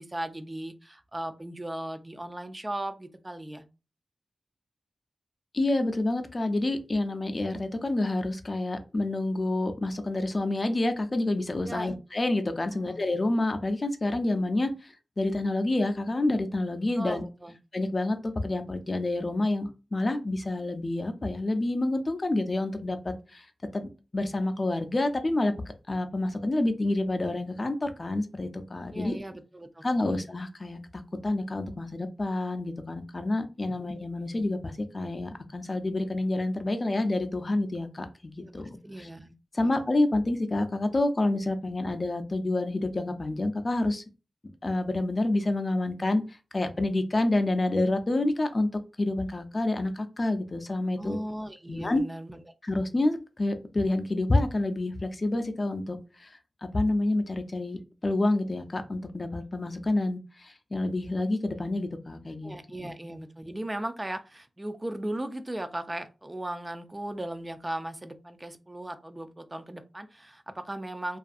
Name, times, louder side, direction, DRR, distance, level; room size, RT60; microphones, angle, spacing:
voice 1, 0.0-3.6 11.6-11.9 12.7-13.0 17.0-17.5 28.9-30.2 33.7-33.9 38.4-39.3 39.6-39.7 51.0-52.4 62.4-71.2, right 1 dB, 25° right, 9 dB, 0.3 m, -37 dB
voice 2, 5.5-17.2 17.7-23.5 23.7-25.5 25.9-29.1 29.8-30.8 31.2-39.1 39.5-44.0 44.6-48.7 49.0-51.2 51.7-52.0 52.6-56.3 56.6-62.5, left 2 dB, 45° left, 7 dB, 0.4 m, -28 dB
2.6 x 2.4 x 2.4 m, 0.31 s
cardioid pair, 45°, 0 cm